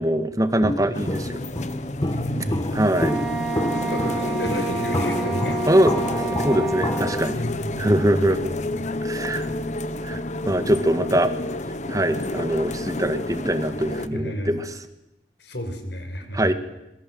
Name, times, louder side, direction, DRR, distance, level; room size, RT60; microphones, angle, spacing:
voice 1, 0.0-1.4 2.8-3.3 5.6-6.0 6.4-7.4 7.8-8.5 9.1-9.5 10.0-11.3 11.9-14.6 16.3-16.5, right 1 dB, 20° right, 9 dB, 1.8 m, -22 dB
Walk footsteps, 0.6-7.3, left 1 dB, 25° left, 1.3 m, -29 dB
sound 1, 0.9-14.1, left 2 dB, 40° left, 1.1 m, -30 dB
voice 2, 2.1-2.6 3.7-5.6 6.0-6.2 7.3-8.2 8.7-8.9 14.1-14.6 15.4-16.5, equal, 70° left, 7 dB, 5.4 m, -31 dB
Wind instrument woodwind instrument, 2.9-7.4, right 4 dB, ahead, 2.8 m, -30 dB
26.5 x 22.5 x 7.9 m, 0.87 s
head